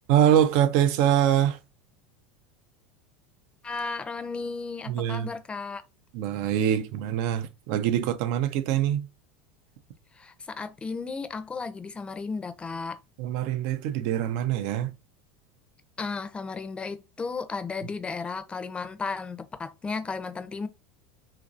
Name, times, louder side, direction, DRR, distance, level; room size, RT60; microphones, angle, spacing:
voice 1, 0.1-1.6 4.9-5.3 6.1-9.1 13.2-14.9, right 10 dB, 60° right, 0.5 m, -24 dB
voice 2, 3.6-5.8 10.1-13.0 16.0-20.7, left 4 dB, 20° left, 0.5 m, -34 dB
3.0 x 2.6 x 2.4 m
hypercardioid pair, 85°, 6 cm